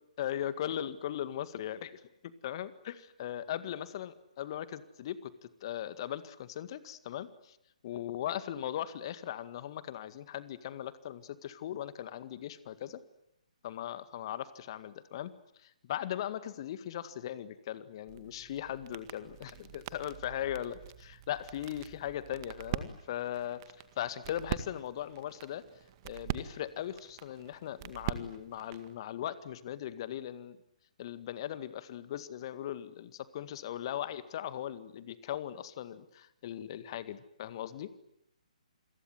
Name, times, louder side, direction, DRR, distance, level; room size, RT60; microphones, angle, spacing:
voice 1, 0.2-5.3 5.6-7.6 7.8-13.0 13.6-15.3 15.6-23.6 24.0-25.6 26.0-30.6 31.0-37.9, left 11 dB, 40° left, 13 dB, 1.9 m, -39 dB
sound 1, 18.1-28.9, right 12 dB, 35° right, 1.9 m, -43 dB
28.0 x 22.5 x 9.2 m, 0.80 s
figure-of-eight pair, 130°, 4 cm